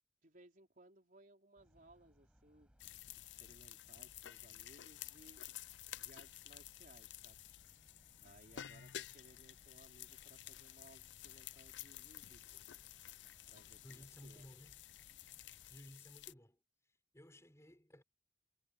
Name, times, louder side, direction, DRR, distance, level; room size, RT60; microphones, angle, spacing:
voice 1, 0.2-2.8 3.4-5.4 5.9-7.4 8.2-12.7 13.5-14.5, right 1 dB, 50° right, 4.4 m, -64 dB
sound 1, 1.6-15.8, equal, 5° right, 7.2 m, -70 dB
sound 2, 2.8-16.3, left 12 dB, 80° left, 0.5 m, -52 dB
voice 2, 13.8-14.8 15.7-16.6 17.1-18.0, equal, 15° left, 6.8 m, -57 dB
head